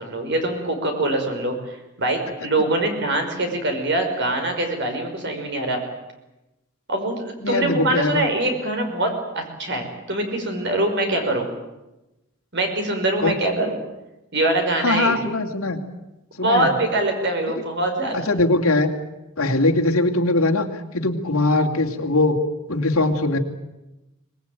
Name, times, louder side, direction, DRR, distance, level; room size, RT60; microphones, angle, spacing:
voice 1, 0.0-5.8 6.9-11.5 12.5-13.8 14.3-15.2 16.4-18.3, right 1 dB, 55° right, 4 dB, 5.3 m, -23 dB
voice 2, 7.4-8.2 13.2-13.3 14.8-15.8 16.4-16.7 18.1-18.9 19.4-20.7 20.9-22.4 22.7-23.4, left 2 dB, 70° left, 2 dB, 2.8 m, -21 dB
24.5 x 19.5 x 9.3 m, 0.97 s
head